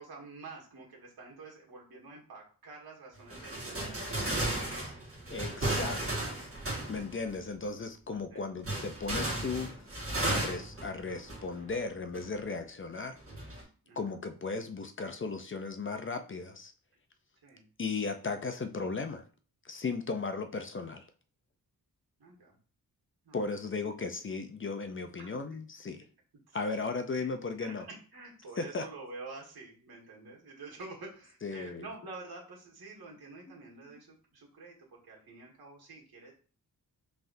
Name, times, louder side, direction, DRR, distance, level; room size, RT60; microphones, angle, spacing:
voice 1, 0.0-4.9 8.3-8.4 13.8-14.0 17.4-17.6 22.2-22.6 23.3-23.5 25.2-25.3 27.1-27.3 27.6-36.3, right 3 dB, 85° right, -3 dB, 1.8 m, -48 dB
sound 1, 3.3-7.4 8.6-11.8 12.1-12.3 13.2-13.6, right 1 dB, 40° right, 1.6 m, -34 dB
voice 2, 5.3-6.3 6.9-13.2 14.0-16.7 17.8-19.2 19.6-21.1 23.3-26.0 26.5-27.9 28.6-28.9 31.4-31.9 33.9-34.0, left 4 dB, 35° left, 7 dB, 0.5 m, -36 dB
5.6 x 3.4 x 2.6 m, 0.39 s
wide cardioid pair, 115°, 36 cm